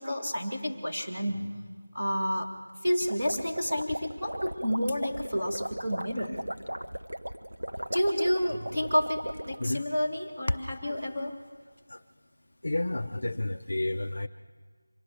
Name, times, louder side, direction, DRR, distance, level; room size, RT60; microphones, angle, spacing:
voice 1, 0.0-1.4 1.9-2.5 2.8-6.4 7.9-11.4, equal, 10° right, -7 dB, 2.2 m, -30 dB
sound 1, 2.9-9.7, right 1 dB, 85° right, 1.6 m, -37 dB
voice 2, 12.6-14.3, left 2 dB, 40° left, 6 dB, 0.8 m, -30 dB
25.5 x 19.5 x 6.8 m, 1.5 s
figure-of-eight pair, 180°, 0 cm